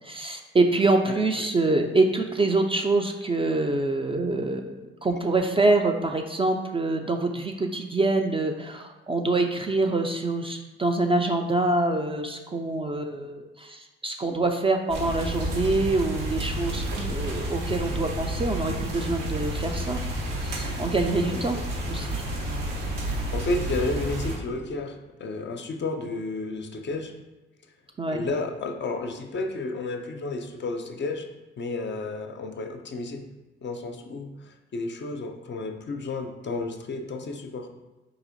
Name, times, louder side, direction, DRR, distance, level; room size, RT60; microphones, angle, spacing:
voice 1, 0.0-20.0 20.4-21.6 21.9-22.2 28.0-28.2, right 2 dB, 20° right, 4 dB, 0.3 m, -25 dB
sound 1, 14.9-24.4, right 1 dB, 85° right, 0.6 m, -30 dB
voice 2, 23.3-27.1 28.1-31.3 31.6-33.3 33.6-37.7, left 3 dB, 40° left, 5 dB, 0.5 m, -32 dB
3.9 x 2.7 x 2.5 m, 1.1 s
hypercardioid pair, 40°, 29 cm